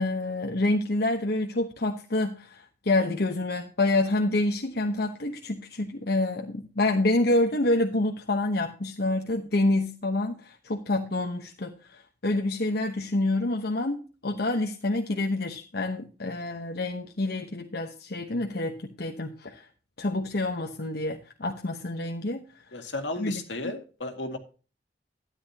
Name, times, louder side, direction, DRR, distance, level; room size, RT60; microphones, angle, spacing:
voice 1, 0.0-19.7 20.0-22.4 23.2-23.7, left 2 dB, 60° left, 3 dB, 1.1 m, -27 dB
voice 2, 22.7-24.4, left 2 dB, 80° left, 6 dB, 2.1 m, -34 dB
13.0 x 10.5 x 2.8 m, 0.36 s
head